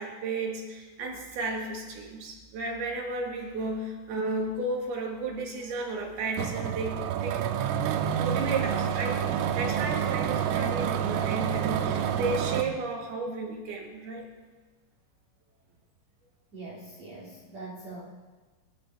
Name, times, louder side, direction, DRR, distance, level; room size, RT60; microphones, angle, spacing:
voice 1, 0.0-7.5 7.9-14.3, right 3 dB, 60° right, 0 dB, 3.2 m, -33 dB
sound 1, 6.4-12.6, right 9 dB, 85° right, 3.3 m, -28 dB
voice 2, 16.5-18.0, right 2 dB, 45° right, -6 dB, 2.7 m, -42 dB
26.0 x 12.0 x 3.5 m, 1.3 s
omnidirectional pair, 5.8 m